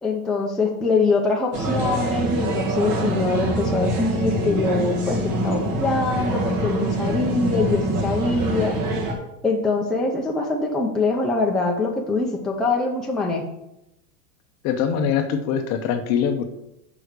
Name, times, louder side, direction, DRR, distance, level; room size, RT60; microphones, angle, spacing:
voice 1, 0.0-8.8 9.4-13.5, left 3 dB, ahead, -2 dB, 0.6 m, -23 dB
sound 1, 1.5-9.1, right 1 dB, 45° right, 1.7 m, -25 dB
voice 2, 14.6-16.5, left 7 dB, 35° left, 8 dB, 0.7 m, -23 dB
6.0 x 4.9 x 6.6 m, 0.86 s
supercardioid pair, 145°, 44 cm